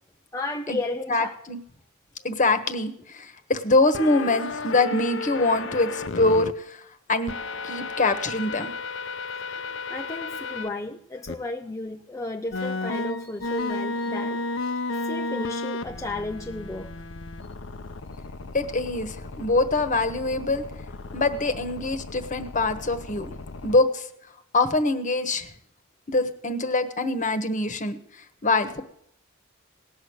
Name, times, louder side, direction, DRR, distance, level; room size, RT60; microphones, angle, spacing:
voice 1, 0.3-1.4 9.4-16.9, left 2 dB, 15° left, 0.6 m, -34 dB
voice 2, 1.1-1.6 2.2-6.8 7.1-7.3 7.6-8.7 18.5-20.6 21.1-23.3 23.6-24.1 24.5-25.5 26.1-28.0 28.4-28.8, left 2 dB, 40° left, 1.3 m, -24 dB
sound 1, 3.9-6.5 7.3-10.7 11.3-11.4 12.5-23.7, left 3 dB, 70° left, 0.7 m, -33 dB
18.0 x 6.5 x 9.4 m
head